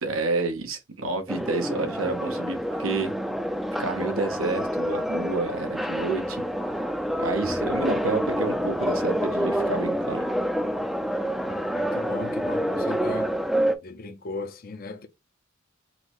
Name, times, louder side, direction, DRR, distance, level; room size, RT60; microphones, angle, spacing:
voice 1, 0.0-3.1 3.8-6.4 7.2-10.3, right 3 dB, 85° right, 0.9 m, -29 dB
sound 1, 1.3-13.7, equal, ahead, 0.4 m, -27 dB
voice 2, 11.5-13.4 13.8-15.1, left 3 dB, 45° left, 0.5 m, -37 dB
5.7 x 2.1 x 2.9 m
head